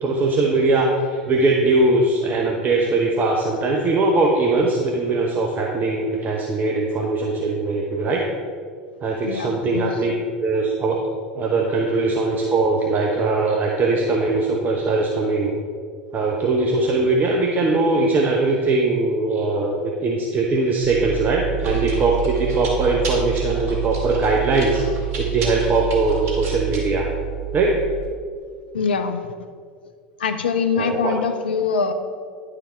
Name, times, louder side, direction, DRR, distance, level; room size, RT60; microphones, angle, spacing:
voice 1, 0.0-8.2 9.0-10.1 10.4-11.0 11.3-15.5 16.1-27.1 27.5-27.7 30.8-31.1, right 3 dB, 35° right, 0 dB, 0.9 m, -21 dB
voice 2, 9.2-9.9 28.7-29.3 30.2-31.9, left 5 dB, 80° left, 8 dB, 0.5 m, -23 dB
Chewing mastication, 20.8-28.1, right 12 dB, 55° right, 2.2 m, -28 dB
10.5 x 4.9 x 4.4 m, 2.1 s
hypercardioid pair, 80°, 5 cm